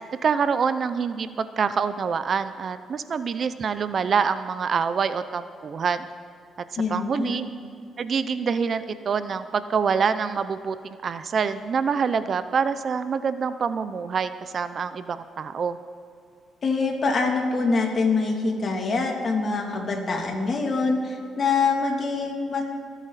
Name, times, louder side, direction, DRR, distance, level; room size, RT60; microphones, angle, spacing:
voice 1, 0.2-6.1 6.9-7.4 8.0-10.8 11.0-15.8, right 6 dB, 50° right, 12 dB, 0.6 m, -26 dB
voice 2, 6.8-7.4 16.6-22.6, left 4 dB, 45° left, 1 dB, 2.8 m, -24 dB
27.5 x 9.2 x 4.2 m, 2.5 s
cardioid pair, 90°, 0 cm